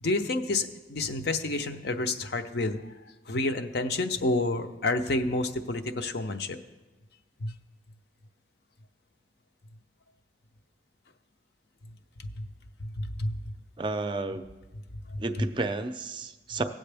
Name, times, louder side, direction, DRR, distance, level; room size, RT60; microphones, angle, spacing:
voice 1, 0.0-2.8 3.3-6.6 7.4-7.5 12.4-12.5 12.8-13.4 15.1-15.2, left 2 dB, 60° left, 7 dB, 0.6 m, -29 dB
voice 2, 13.8-14.5 15.2-16.6, right 2 dB, 25° right, 8 dB, 0.4 m, -31 dB
17.5 x 7.6 x 3.4 m, 1.1 s
head